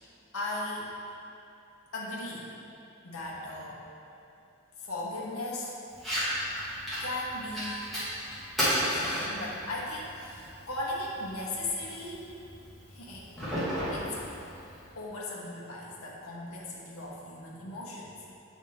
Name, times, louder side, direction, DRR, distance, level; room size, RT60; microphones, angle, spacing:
voice 1, 0.3-0.9 1.9-2.5 3.0-3.8 4.8-5.7 7.0-7.9 8.9-12.4 12.9-13.3 13.9-14.1 14.9-18.1, left 2 dB, 85° left, -4 dB, 0.9 m, -37 dB
Fire, 5.9-14.9, equal, ahead, 1.4 m, -34 dB
6.4 x 3.5 x 4.2 m, 2.7 s
head